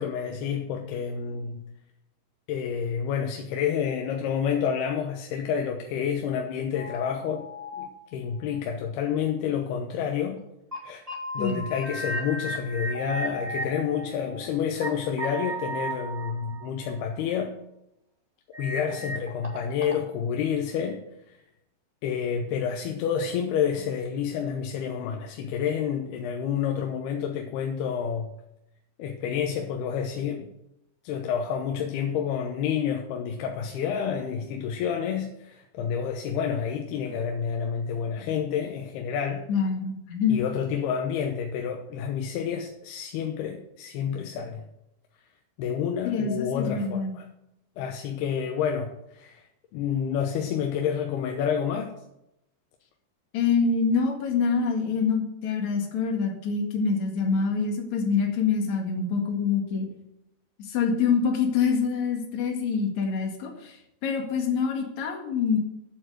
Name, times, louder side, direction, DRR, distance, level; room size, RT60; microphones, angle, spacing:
voice 1, 0.0-1.6 2.5-7.5 7.8-10.4 10.8-11.0 11.3-17.5 18.6-21.0 21.3-21.4 22.0-28.3 29.0-30.5 31.0-39.5 40.3-44.7 45.6-47.3 47.8-49.4 49.7-51.9, left 7 dB, 80° left, 3 dB, 2.8 m, -29 dB
sound 1, 6.7-7.8 8.5-8.6 10.4-10.5 10.7-10.8 11.1-14.9 15.2-17.0 18.5-20.0, right 1 dB, 15° right, 1.3 m, -35 dB
voice 2, 39.5-40.4 46.0-47.1 53.3-59.9 60.7-63.8 64.0-65.6, left 5 dB, 50° left, 3 dB, 2.8 m, -25 dB
9.0 x 7.7 x 8.0 m, 0.82 s
omnidirectional pair, 4.7 m